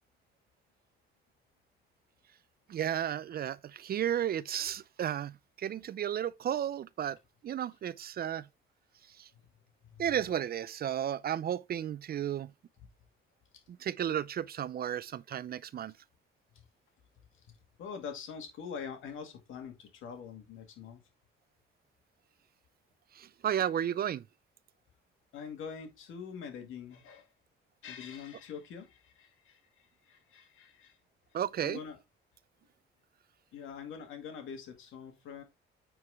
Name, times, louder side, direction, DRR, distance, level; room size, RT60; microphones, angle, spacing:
voice 1, 2.7-7.2 7.4-8.5 9.2-9.3 10.0-12.5 13.8-15.9 23.2-24.2 31.3-31.8, right 10 dB, 50° right, 0.5 m, -33 dB
voice 2, 9.8-10.1 16.6-16.7 17.5-21.0 25.3-27.3 27.8-31.0 31.6-32.0 33.5-35.4, left 6 dB, 80° left, 2.2 m, -44 dB
9.3 x 4.7 x 3.6 m
cardioid pair, 90°, 20 cm